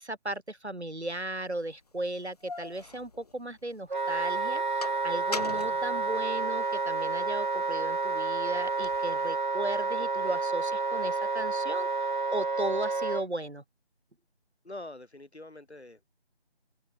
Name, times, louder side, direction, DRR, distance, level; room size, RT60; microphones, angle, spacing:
voice 1, 0.0-13.6, right 1 dB, 90° right, 5.1 m, -36 dB
sound 1, 1.3-1.4 2.0-3.9 4.3-6.9 7.3-9.1, left 3 dB, 35° left, 1.9 m, -42 dB
Wind instrument woodwind instrument, 3.9-13.2, right 3 dB, 45° right, 0.6 m, -30 dB
voice 2, 14.6-16.1, left 2 dB, 80° left, 5.4 m, -45 dB
figure-of-eight pair, 165°, 32 cm